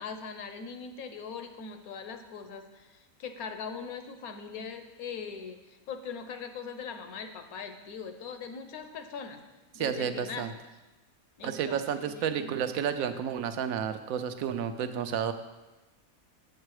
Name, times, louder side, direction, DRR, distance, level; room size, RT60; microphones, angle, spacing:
voice 1, 0.0-9.4 9.7-10.5 11.4-12.6, left 6 dB, 90° left, 7 dB, 1.3 m, -41 dB
voice 2, 9.8-10.5 11.4-15.3, right 8 dB, 80° right, 9 dB, 1.0 m, -31 dB
7.6 x 7.4 x 4.8 m, 1.1 s
omnidirectional pair, 1.5 m